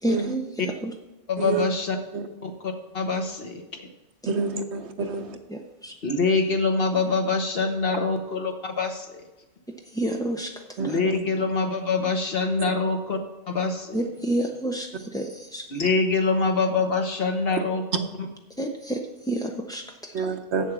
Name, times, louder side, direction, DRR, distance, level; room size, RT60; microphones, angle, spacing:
voice 1, 0.0-0.9 4.2-4.3 5.0-5.1 5.5-6.0 9.7-11.0 13.9-15.7 18.6-20.3, right 1 dB, 5° left, 2 dB, 0.3 m, -30 dB
voice 2, 1.3-2.0 2.4-3.6 6.0-9.2 10.8-13.2 13.5-14.0 15.7-17.8, left 4 dB, 50° left, 4 dB, 1.3 m, -25 dB
voice 3, 4.3-5.4 10.8-11.2 12.6-12.7 20.1-20.7, right 4 dB, 65° right, 7 dB, 1.1 m, -28 dB
8.1 x 7.2 x 6.1 m, 1.0 s
omnidirectional pair, 1.3 m